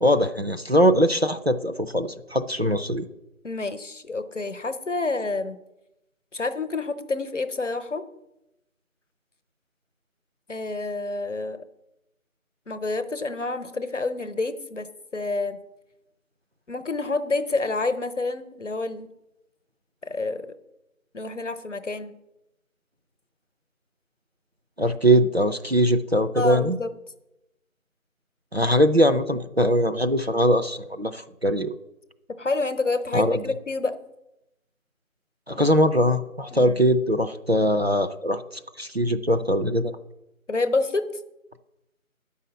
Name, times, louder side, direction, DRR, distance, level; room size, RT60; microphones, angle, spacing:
voice 1, 0.0-3.1 24.8-26.8 28.5-31.7 33.1-33.4 35.5-38.4 38.8-39.9, equal, 50° right, 7 dB, 0.5 m, -21 dB
voice 2, 3.4-5.6 6.3-8.0 10.5-11.6 12.7-15.6 16.7-19.1 20.0-20.5 21.1-22.2 26.3-26.9 32.4-34.0 36.5-36.9 40.5-41.1, left 3 dB, 60° left, 12 dB, 0.8 m, -28 dB
8.6 x 5.6 x 7.4 m, 0.90 s
figure-of-eight pair, 175°, 42 cm